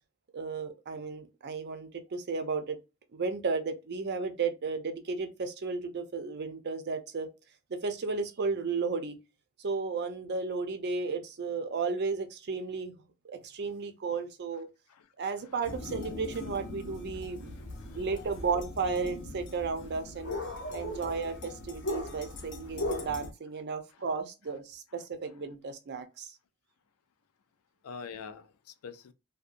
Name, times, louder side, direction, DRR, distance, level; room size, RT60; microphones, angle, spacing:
voice 1, 0.3-2.8 3.1-7.3 7.7-9.2 9.6-12.9 13.3-14.7 15.2-17.5 17.9-20.3 20.7-26.4, right 4 dB, 50° right, 0.5 m, -34 dB
Istanbul ambience princes island, 15.6-23.3, left 1 dB, 55° left, 0.7 m, -39 dB
voice 2, 20.7-21.0 22.2-22.3 23.0-23.1 27.8-29.1, left 5 dB, 90° left, 0.4 m, -45 dB
2.7 x 2.2 x 2.4 m
head